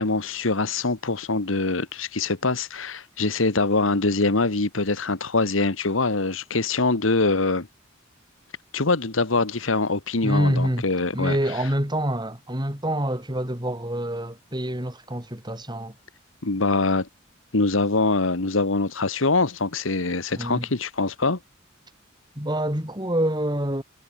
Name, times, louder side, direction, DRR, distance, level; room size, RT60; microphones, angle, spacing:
voice 1, 0.0-7.7 8.7-11.4 16.4-17.1 17.5-21.4, left 3 dB, 75° left, 1.6 m, -23 dB
voice 2, 10.2-10.8 11.1-15.9 20.3-20.7 22.4-23.8, right 1 dB, 20° right, 6.3 m, -26 dB
head